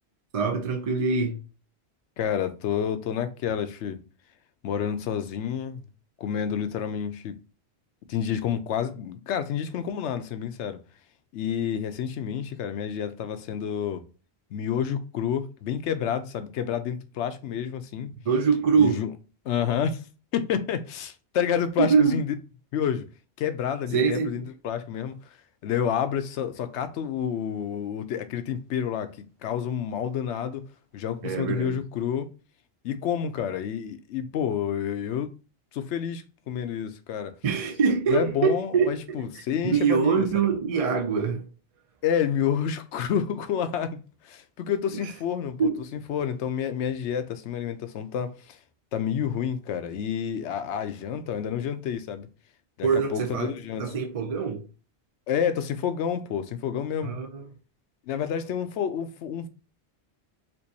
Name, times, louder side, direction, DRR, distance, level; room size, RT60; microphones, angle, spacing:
voice 1, 0.3-1.4 18.3-19.0 21.8-22.2 23.9-24.3 31.2-31.8 37.4-39.3 39.6-41.4 44.9-45.1 45.6-45.8 52.8-54.7 57.0-57.5, right 6 dB, 50° right, 0.4 m, -24 dB
voice 2, 2.2-4.0 4.6-5.8 6.2-7.4 8.1-10.8 11.3-14.0 14.5-18.1 18.8-19.1 19.4-20.0 20.3-22.3 22.7-23.1 23.4-25.1 25.6-29.1 29.4-30.6 30.9-32.3 32.8-35.3 35.7-37.3 38.1-40.4 42.0-44.0 44.2-45.6 45.9-48.6 48.9-52.3 52.8-53.8 55.3-57.1 58.1-59.5, left 8 dB, 85° left, 0.9 m, -29 dB
4.5 x 2.5 x 2.7 m
omnidirectional pair, 1.1 m